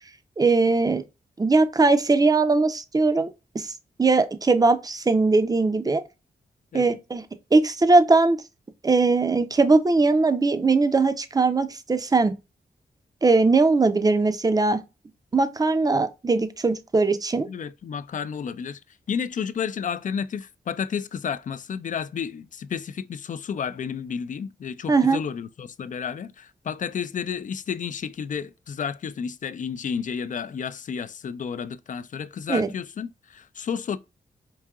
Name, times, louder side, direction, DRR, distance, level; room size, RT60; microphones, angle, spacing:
voice 1, 0.4-1.0 1.4-3.7 4.0-6.0 6.7-7.2 7.5-8.4 8.8-12.3 13.2-14.8 15.3-17.5 24.9-25.2 32.5-32.7, right 3 dB, 20° right, 0.5 m, -20 dB
voice 2, 17.5-18.8 19.1-34.0, left 7 dB, 50° left, 0.4 m, -31 dB
4.7 x 2.7 x 2.3 m
cardioid pair, 75°, 17 cm